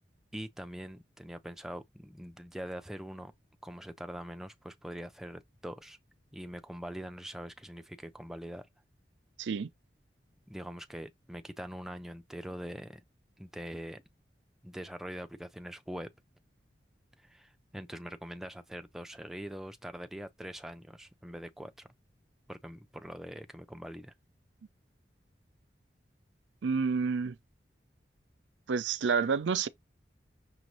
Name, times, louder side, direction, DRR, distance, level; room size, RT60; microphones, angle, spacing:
voice 1, 0.3-3.3 3.6-6.0 6.3-8.7 10.5-13.0 13.4-14.0 14.6-16.1 17.2-21.9 22.5-24.1, equal, ahead, 0.3 m, -43 dB
voice 2, 9.4-9.7 26.6-27.3 28.7-29.7, right 5 dB, 90° right, 0.5 m, -29 dB
5.9 x 2.5 x 3.0 m
head